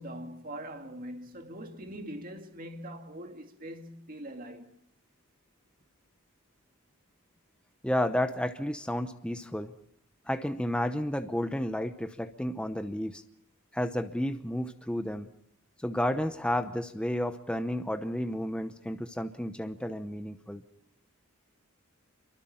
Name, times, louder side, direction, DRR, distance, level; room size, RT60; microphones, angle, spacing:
voice 1, 0.0-4.8, right 1 dB, 40° right, 2.2 m, -42 dB
voice 2, 7.8-9.7 10.3-13.2 13.7-15.3 15.8-20.6, left 1 dB, 5° left, 0.8 m, -31 dB
27.5 x 23.5 x 4.3 m
head